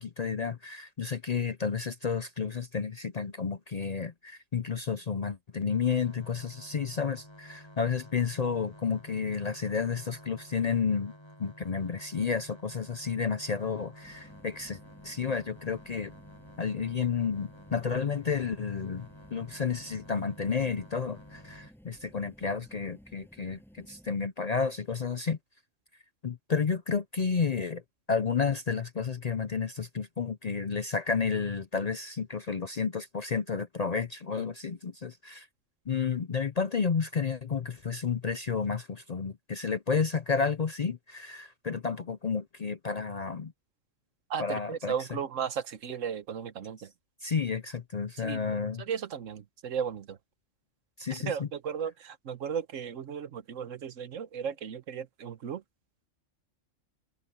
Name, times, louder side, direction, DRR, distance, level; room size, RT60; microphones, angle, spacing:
voice 1, 0.0-11.1 11.4-14.8 15.0-16.1 16.6-25.4 26.2-27.8 28.1-35.5 35.9-43.5 44.4-45.1 47.2-48.8 51.0-51.5, left 5 dB, 45° left, 0.5 m, -31 dB
sound 1, 5.7-21.7, equal, 20° left, 3.6 m, -52 dB
sound 2, 14.0-24.3, equal, ahead, 7.4 m, -56 dB
voice 2, 44.3-46.9 48.2-48.4 48.8-50.2 51.3-55.6, right 7 dB, 80° right, 1.3 m, -35 dB
omnidirectional pair, 1.3 m